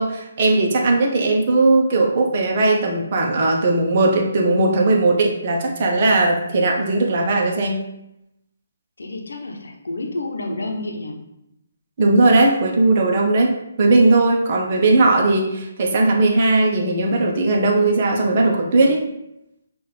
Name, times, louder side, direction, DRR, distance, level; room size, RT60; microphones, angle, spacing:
voice 1, 0.0-7.8 12.0-13.5 13.8-19.0, right 2 dB, 45° right, 0 dB, 0.8 m, -18 dB
voice 2, 9.0-11.2, left 2 dB, 80° left, 2 dB, 0.8 m, -29 dB
5.7 x 2.6 x 3.2 m, 0.83 s
figure-of-eight pair, 145°, 0 cm